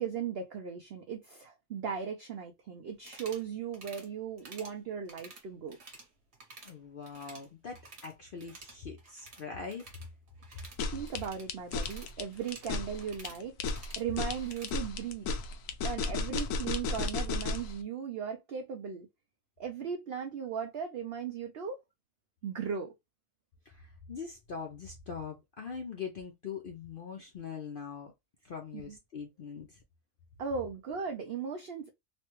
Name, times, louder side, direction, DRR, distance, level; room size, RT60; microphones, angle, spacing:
voice 1, 0.0-5.8 10.9-15.3 15.8-19.1 19.6-21.8 22.4-22.9 28.7-29.0 30.4-31.9, right 7 dB, 80° right, 0.5 m, -37 dB
sound 1, 3.0-3.5 3.7-4.1 4.4-4.8 5.1-6.1 6.3-6.7 7.0-8.1 8.4-14.8, right 3 dB, 50° right, 1.2 m, -52 dB
voice 2, 6.6-9.9 23.7-28.1 28.4-29.8, left 6 dB, 60° left, 0.5 m, -42 dB
sound 2, 10.6-17.7, left 3 dB, 85° left, 1.1 m, -34 dB
3.2 x 2.2 x 2.9 m
omnidirectional pair, 1.6 m